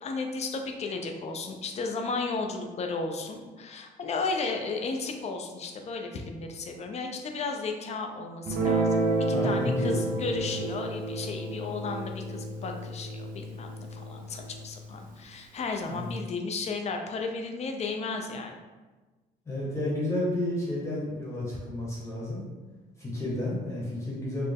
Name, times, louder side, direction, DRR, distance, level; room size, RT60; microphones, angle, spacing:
voice 1, 0.0-18.6, left 4 dB, 40° left, 3 dB, 0.5 m, -34 dB
Guitar, 8.4-15.0, right 2 dB, 55° right, 0.7 m, -30 dB
voice 2, 9.3-10.6 15.9-16.1 19.5-22.4 23.0-24.5, left 1 dB, 15° left, -6 dB, 1.1 m, -31 dB
4.2 x 2.1 x 3.5 m, 1.3 s
cardioid pair, 110°, 17 cm